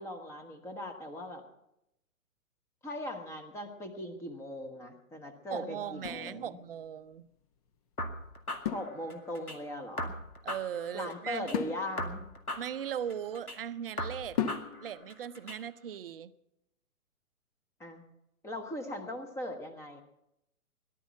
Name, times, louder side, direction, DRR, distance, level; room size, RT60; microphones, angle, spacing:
voice 1, 0.0-1.4 2.8-6.6 8.7-10.2 10.9-12.2 17.8-18.0 18.4-20.0, left 1 dB, 5° left, 6 dB, 1.0 m, -39 dB
voice 2, 5.5-7.3 10.4-11.5 12.6-14.4 14.8-16.3, right 9 dB, 40° right, 15 dB, 0.7 m, -38 dB
sound 1, 6.0-7.0 8.6-9.6 11.5-13.5 14.4-15.1, left 9 dB, 25° left, 0.8 m, -38 dB
sound 2, 8.0-9.6 10.0-11.6 12.0-13.6 14.0-15.6, left 1 dB, 85° left, 2.2 m, -39 dB
18.5 x 12.0 x 5.9 m, 0.83 s
figure-of-eight pair, 125°, 43 cm